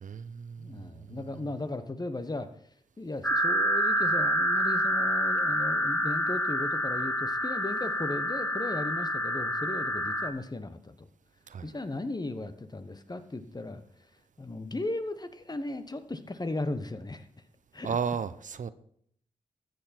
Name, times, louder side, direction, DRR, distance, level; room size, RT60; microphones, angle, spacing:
voice 1, 0.0-1.5 11.5-11.7 17.8-18.7, right 6 dB, 60° right, 14 dB, 0.6 m, -35 dB
voice 2, 0.6-2.5 3.0-11.1 11.6-13.8 14.4-17.3 17.7-18.0, left 2 dB, 30° left, 11 dB, 1.1 m, -36 dB
sound 1, 3.2-10.3, equal, 10° left, 1.6 m, -28 dB
13.5 x 8.0 x 4.4 m, 0.66 s
supercardioid pair, 40°, 14 cm